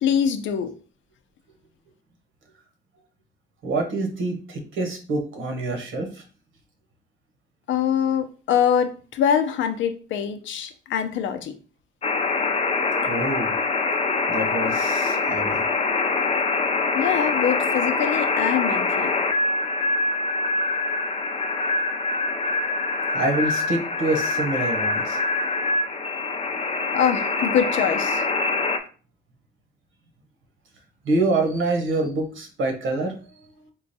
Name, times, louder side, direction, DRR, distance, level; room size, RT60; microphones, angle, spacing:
voice 1, 0.0-0.7 7.7-11.5 16.9-19.1 26.9-28.3, left 8 dB, 70° left, 7 dB, 0.6 m, -24 dB
voice 2, 3.6-6.2 13.1-13.5 14.3-15.6 23.1-25.2 31.0-33.1, right 2 dB, 80° right, 4 dB, 1.1 m, -26 dB
sound 1, 12.0-28.8, left 3 dB, 30° left, 0.6 m, -24 dB
3.8 x 2.3 x 4.1 m, 0.37 s
cardioid pair, 90°, 20 cm